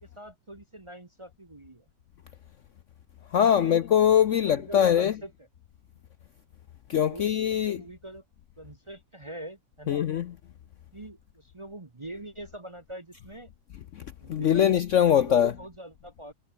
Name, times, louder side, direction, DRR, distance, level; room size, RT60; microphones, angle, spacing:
voice 1, 0.0-1.9 3.4-3.8 4.3-5.3 7.1-8.2 8.6-10.0 10.9-13.5 14.2-14.8 15.1-16.3, right 1 dB, 20° right, 0.9 m, -43 dB
voice 2, 3.3-5.2 6.9-7.8 9.9-10.4 14.0-15.5, left 9 dB, 60° left, 0.8 m, -22 dB
omnidirectional pair, 1.8 m